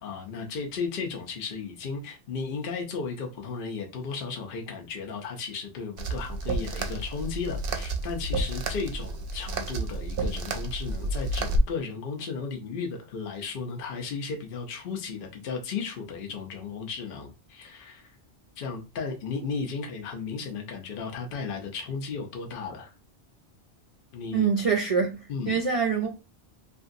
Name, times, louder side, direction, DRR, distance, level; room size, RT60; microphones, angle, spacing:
voice 1, 0.0-18.2 18.6-22.9 24.1-24.5 25.3-25.6, left 5 dB, 60° left, 0.8 m, -35 dB
sound 1, 6.0-11.6, right 2 dB, 65° right, 0.7 m, -31 dB
voice 2, 24.3-26.1, right 6 dB, 50° right, 0.4 m, -25 dB
2.9 x 2.5 x 2.5 m
omnidirectional pair, 1.1 m